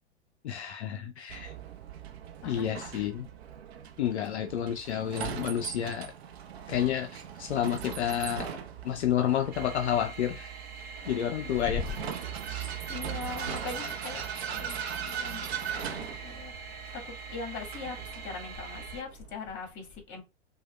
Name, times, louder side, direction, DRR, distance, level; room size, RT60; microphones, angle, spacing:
voice 1, 0.4-1.5 2.4-3.3 4.0-6.1 6.7-8.5 8.8-10.5 11.1-11.8 12.5-12.7, left 10 dB, 75° left, 0.5 m, -30 dB
Vehicle, 1.3-19.4, right 9 dB, 65° right, 0.8 m, -39 dB
voice 2, 2.4-3.1 11.4-11.9 12.7-20.2, left 5 dB, 35° left, 1.8 m, -41 dB
sound 1, 9.5-19.0, right 5 dB, 25° right, 1.2 m, -42 dB
6.0 x 2.3 x 2.2 m
figure-of-eight pair, 95°, 34 cm